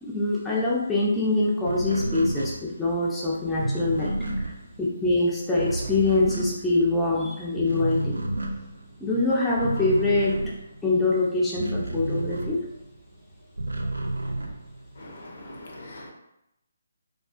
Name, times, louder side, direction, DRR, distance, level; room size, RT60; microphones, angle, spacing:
voice 1, 0.0-4.1 4.8-8.2 9.0-10.4 10.8-12.6, left 2 dB, 5° left, -7 dB, 0.4 m, -24 dB
sound 1, 1.6-7.2 7.5-13.0 13.3-15.1, right 1 dB, 80° right, 0.3 m, -31 dB
voice 2, 15.0-16.1, left 1 dB, 60° left, 0 dB, 0.6 m, -42 dB
2.4 x 2.3 x 2.4 m, 0.84 s
figure-of-eight pair, 145°, 0 cm